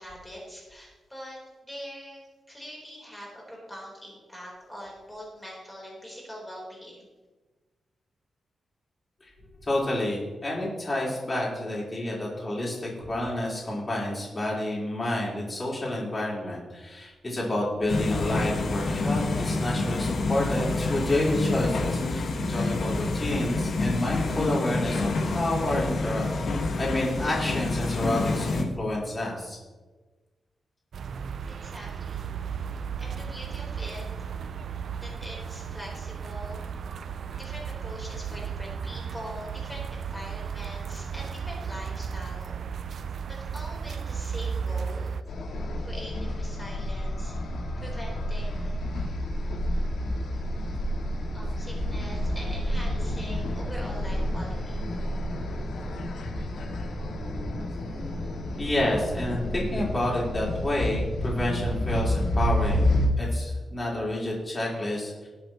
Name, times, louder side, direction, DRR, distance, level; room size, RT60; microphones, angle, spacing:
voice 1, 0.0-7.1 31.5-32.4 33.0-34.3 35.0-36.6 37.3-42.6 43.3-45.2 45.8-47.3 47.8-48.8 51.3-54.8, equal, 5° left, -3 dB, 3.9 m, -43 dB
voice 2, 9.6-26.2 26.8-29.6 58.6-65.3, left 1 dB, 20° left, -5 dB, 4.2 m, -29 dB
sound 1, 17.9-28.6, left 3 dB, 60° left, 1.6 m, -28 dB
sound 2, 30.9-45.2, right 6 dB, 65° right, 0.5 m, -35 dB
sound 3, 45.3-63.1, equal, 80° left, 2.0 m, -30 dB
20.0 x 8.0 x 3.0 m, 1.3 s
wide cardioid pair, 135°, 0 cm